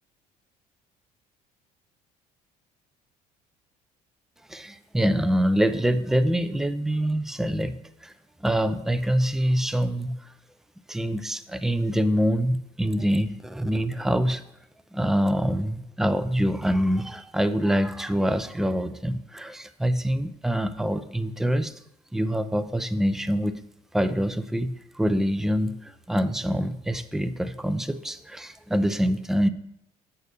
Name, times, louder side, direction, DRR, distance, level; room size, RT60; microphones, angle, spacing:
voice 1, 4.5-8.1 8.4-10.3 10.9-14.4 14.9-21.7 22.1-23.6 23.9-29.5, equal, 5° right, 11 dB, 0.3 m, -25 dB
6.7 x 4.0 x 6.5 m, 0.82 s
cardioid pair, 125°, 15 cm